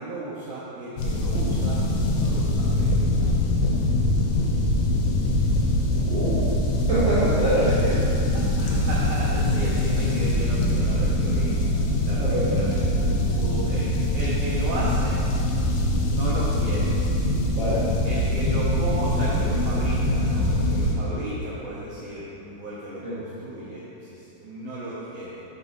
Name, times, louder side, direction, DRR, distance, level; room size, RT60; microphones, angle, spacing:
voice 1, 0.0-1.8 2.1-2.9 8.3-15.2 16.0-17.0 18.0-25.4, right 1 dB, 85° right, -7 dB, 1.7 m, -35 dB
sound 1, 1.0-20.9, left 1 dB, 80° left, 2.9 m, -23 dB
voice 2, 6.0-6.5 6.9-8.0 12.1-12.5 17.5-17.8 23.0-23.2, equal, 65° right, -13 dB, 1.2 m, -24 dB
6.9 x 5.8 x 4.0 m, 2.9 s
omnidirectional pair, 4.7 m